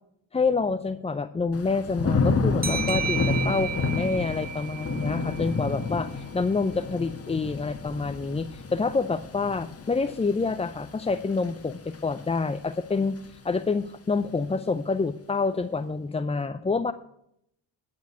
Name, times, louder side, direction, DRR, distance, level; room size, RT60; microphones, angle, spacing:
voice 1, 0.3-16.9, left 4 dB, 15° left, 11 dB, 0.4 m, -27 dB
Thunder / Rain, 1.5-12.5 12.9-13.3, left 4 dB, 30° left, 1.2 m, -30 dB
sound 1, 2.6-6.0, right 7 dB, 20° right, 0.8 m, -34 dB
10.5 x 6.3 x 8.5 m, 0.75 s
supercardioid pair, 60°, 48 cm